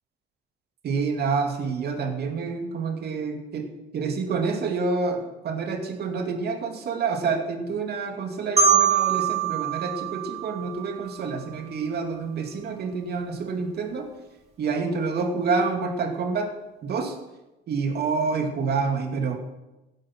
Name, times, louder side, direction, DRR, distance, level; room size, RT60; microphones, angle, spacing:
voice 1, 0.8-14.1 14.6-16.5 16.8-17.2 17.7-19.3, right 4 dB, 55° right, 4 dB, 2.6 m, -28 dB
Marimba xylophone, 8.6-11.4, right 7 dB, 35° right, 3.5 m, -24 dB
15.5 x 10.5 x 6.1 m, 1.0 s
cardioid pair, 125°, 20 cm